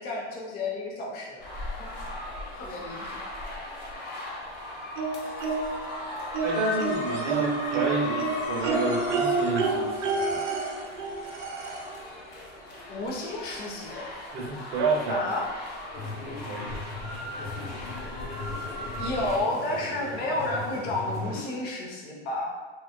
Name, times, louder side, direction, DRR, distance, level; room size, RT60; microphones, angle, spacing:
voice 1, 0.0-1.4 1.8-1.9 2.5-3.2 12.9-14.1 15.1-15.5 18.9-22.6, left 2 dB, 30° left, -2 dB, 0.5 m, -31 dB
sound 1, 1.4-19.4, left 1 dB, 50° left, 0.9 m, -38 dB
sound 2, 5.0-5.9 6.3-12.0 13.2-13.3 13.7-13.8, right 4 dB, 90° right, 0.5 m, -29 dB
voice 2, 6.4-10.5 14.3-15.3 16.5-16.7, right 3 dB, 35° right, 0 dB, 0.5 m, -30 dB
sound 3, 15.9-21.4, left 3 dB, 80° left, 0.8 m, -38 dB
2.2 x 2.0 x 2.9 m, 1.4 s
hypercardioid pair, 105°, 35 cm